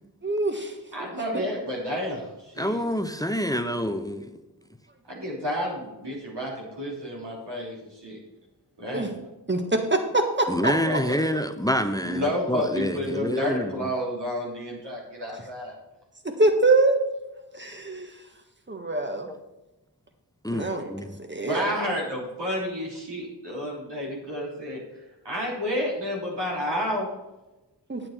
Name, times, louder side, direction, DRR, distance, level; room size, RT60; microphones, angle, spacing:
voice 1, 0.2-0.7 8.9-9.1 9.5-10.7 16.2-17.0 17.5-18.1 18.7-19.3 20.5-20.9 21.2-21.7 27.9-28.0, right 2 dB, 25° right, 5 dB, 1.6 m, -24 dB
voice 2, 0.9-2.8 5.1-8.2 8.8-9.1 10.6-11.2 12.0-15.7 21.4-27.1, equal, 75° right, -3 dB, 3.6 m, -30 dB
voice 3, 2.6-4.3 10.5-13.9 19.2-19.4 20.4-21.1, equal, 10° left, 9 dB, 0.7 m, -27 dB
8.8 x 8.7 x 4.5 m, 1.0 s
cardioid pair, 45°, 42 cm